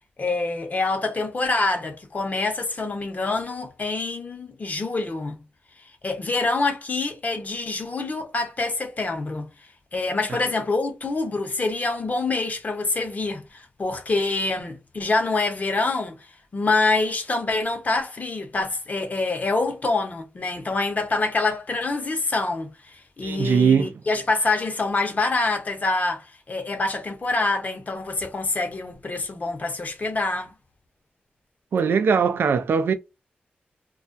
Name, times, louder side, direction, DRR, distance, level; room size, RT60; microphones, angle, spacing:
voice 1, 0.2-5.4 6.0-9.5 9.9-16.3 16.5-30.5, left 3 dB, 45° left, 0.7 m, -26 dB
voice 2, 23.2-23.9 31.7-32.9, right 6 dB, 75° right, 0.3 m, -20 dB
2.3 x 2.1 x 2.5 m
cardioid pair, 65°, 4 cm